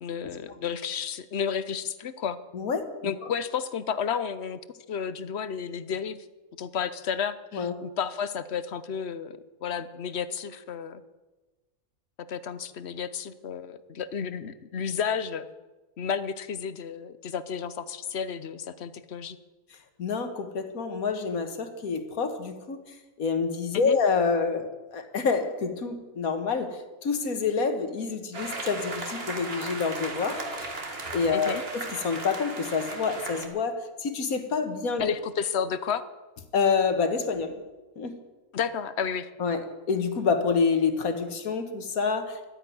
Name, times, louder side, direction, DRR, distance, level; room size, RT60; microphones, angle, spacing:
voice 1, 0.0-2.4 3.0-6.2 6.6-11.0 12.2-15.5 16.0-19.4 23.7-24.0 31.3-31.6 35.0-36.0 38.5-39.3, left 7 dB, 55° left, 14 dB, 0.9 m, -32 dB
voice 2, 2.5-3.3 7.5-7.7 20.0-30.4 31.1-35.0 36.5-37.6 38.0-38.2 39.4-42.5, left 5 dB, 75° left, 8 dB, 1.9 m, -27 dB
sound 1, 28.3-33.5, right 3 dB, 45° right, 1.9 m, -36 dB
12.0 x 10.0 x 9.3 m, 1.2 s
omnidirectional pair, 1.5 m